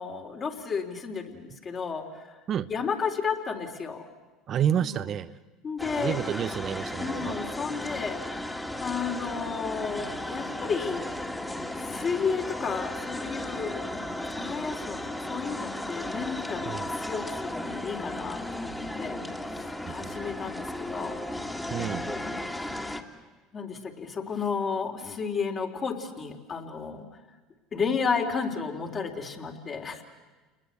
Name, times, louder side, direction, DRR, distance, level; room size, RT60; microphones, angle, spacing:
voice 1, 0.0-2.4 2.7-4.1 4.8-5.0 5.6-6.2 7.0-11.1 11.8-19.2 19.5-21.2 21.7-22.4 23.5-27.1 27.7-30.0, left 5 dB, 40° left, 3 dB, 3.6 m, -33 dB
voice 2, 4.5-5.4 6.0-7.4 16.7-16.9 19.9-20.2 21.7-22.1, right 9 dB, 45° right, 12 dB, 0.8 m, -29 dB
sound 1, 5.8-23.0, left 1 dB, 10° left, 2.3 m, -35 dB
29.5 x 21.0 x 8.3 m, 1.2 s
hypercardioid pair, 75°, 0 cm